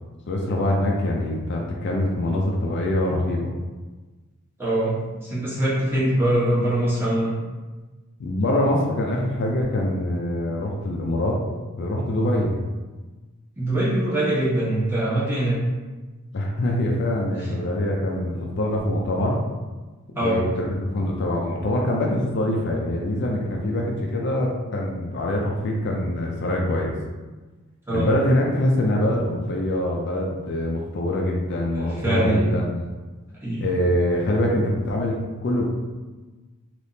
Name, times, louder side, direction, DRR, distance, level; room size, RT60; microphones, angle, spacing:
voice 1, 0.3-3.5 8.2-11.4 11.8-12.6 16.3-19.4 20.1-27.0 27.9-32.8 33.6-35.2 35.4-35.6, left 1 dB, 50° left, -1 dB, 0.4 m, -24 dB
voice 2, 4.6-4.9 5.2-7.3 13.6-15.6 17.4-17.5 20.1-20.4 27.9-28.1 31.7-32.5 33.4-33.7, right 1 dB, 10° right, -9 dB, 1.0 m, -23 dB
3.4 x 2.9 x 2.7 m, 1.2 s
head